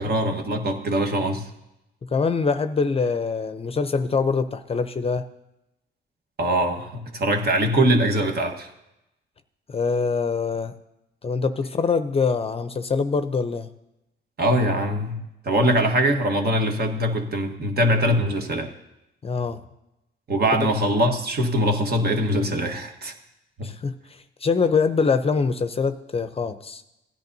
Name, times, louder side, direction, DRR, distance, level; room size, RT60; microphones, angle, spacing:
voice 1, 0.0-1.5 6.4-8.7 14.4-18.7 20.3-23.1 23.6-23.7, right 1 dB, 50° right, 5 dB, 1.4 m, -22 dB
voice 2, 2.0-5.2 9.7-10.7 11.2-13.7 19.2-19.6 20.6-20.7 23.6-23.9 24.4-26.8, left 5 dB, 30° left, 11 dB, 0.6 m, -24 dB
16.5 x 10.5 x 2.7 m, 0.90 s
cardioid pair, 90°, 20 cm